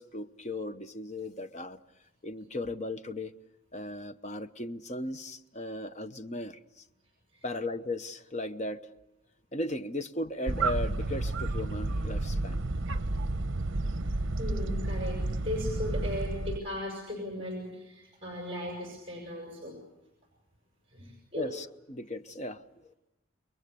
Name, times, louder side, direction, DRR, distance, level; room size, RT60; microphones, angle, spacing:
voice 1, 0.0-1.8 2.2-3.3 3.7-6.8 7.4-8.8 9.5-12.6 21.3-22.9, left 1 dB, 35° left, 9 dB, 0.9 m, -37 dB
sound 1, 10.5-16.6, right 2 dB, 65° right, 0.9 m, -31 dB
voice 2, 14.4-19.8 20.9-21.5, left 1 dB, 25° right, 0 dB, 6.7 m, -37 dB
29.5 x 22.0 x 6.9 m, 0.94 s
head